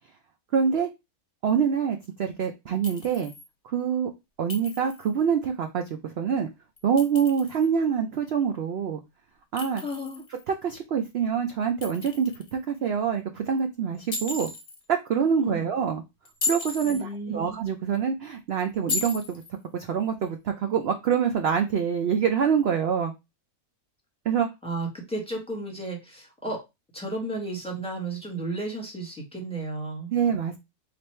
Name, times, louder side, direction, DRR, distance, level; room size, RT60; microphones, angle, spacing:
voice 1, 0.5-0.9 1.4-3.3 3.6-4.1 4.4-6.5 6.8-9.0 9.5-9.8 10.5-14.5 14.9-16.0 16.4-19.4 19.7-23.1 24.3-24.5 30.1-30.6, right 7 dB, 90° right, 5 dB, 0.5 m, -25 dB
Chink clink, 2.8-3.5 4.5-5.1 6.8-7.7 9.6-10.4 11.8-12.5 14.1-14.8 16.2-17.0 18.9-19.5, left 4 dB, 40° left, 0.7 m, -34 dB
voice 2, 9.7-10.2 15.4-15.7 16.8-17.6 24.6-26.6 26.9-30.1, right 2 dB, 5° left, -1 dB, 1.2 m, -33 dB
3.3 x 2.5 x 4.2 m, 0.23 s
omnidirectional pair, 1.6 m